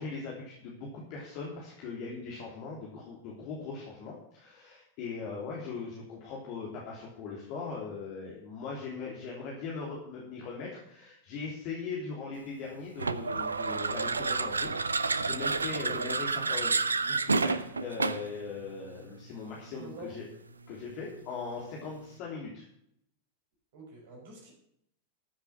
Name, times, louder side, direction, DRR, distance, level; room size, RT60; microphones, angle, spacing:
voice 1, 0.0-20.2 20.7-22.6, left 4 dB, 45° left, -4 dB, 3.4 m, -40 dB
sound 1, 13.0-18.4, right 4 dB, 75° right, 0.7 m, -30 dB
voice 2, 19.8-20.1 23.7-24.5, right 2 dB, 55° right, -1 dB, 5.5 m, -46 dB
14.0 x 8.1 x 6.1 m, 0.73 s
figure-of-eight pair, 90°, 0 cm